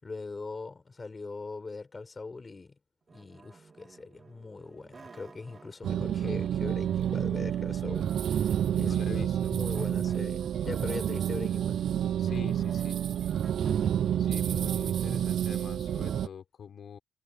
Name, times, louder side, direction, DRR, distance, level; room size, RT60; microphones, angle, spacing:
voice 1, 0.0-2.8 3.1-8.1 8.8-11.8, left 3 dB, 25° left, 5.8 m, -40 dB
sound 1, 3.1-6.0 6.2-8.9 9.7-11.3 11.8-14.3, right 4 dB, 35° right, 4.1 m, -50 dB
sound 2, 5.8-16.3, right 10 dB, 65° right, 0.7 m, -29 dB
voice 2, 8.7-9.5 12.2-13.0 14.2-17.0, left 7 dB, 55° left, 4.9 m, -44 dB
cardioid pair, 90°, 0 cm